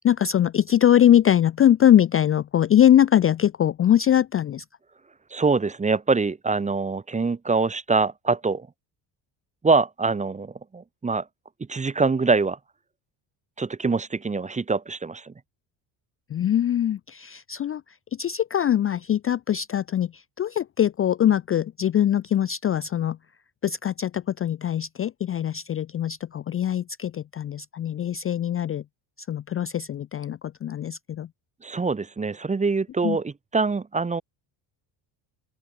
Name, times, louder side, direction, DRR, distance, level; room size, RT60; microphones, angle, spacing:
voice 1, 0.0-4.6 16.3-17.8 18.2-23.2 23.6-28.8 29.3-31.3 33.0-33.2, left 10 dB, 30° left, 0.4 m, -22 dB
voice 2, 5.3-8.7 9.6-11.3 11.7-12.6 13.6-15.3 31.6-34.2, right 4 dB, 15° right, 0.8 m, -24 dB
open air
cardioid pair, 120°, 47 cm